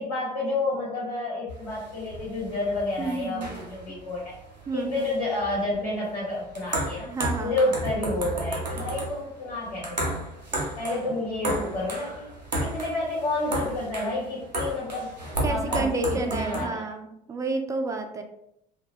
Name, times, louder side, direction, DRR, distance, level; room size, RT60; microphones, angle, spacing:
voice 1, 0.0-4.3 4.7-7.1 7.4-10.2 10.8-12.3 12.6-15.2 15.5-16.9, left 2 dB, 80° left, -8 dB, 1.2 m, -29 dB
sound 1, 1.5-16.7, right 1 dB, 90° right, 0.7 m, -33 dB
voice 2, 3.0-3.6 3.9-4.0 4.7-5.1 7.1-7.6 15.4-18.2, right 3 dB, 15° right, 5 dB, 0.4 m, -30 dB
2.7 x 2.1 x 3.4 m, 0.79 s
figure-of-eight pair, 65°, 21 cm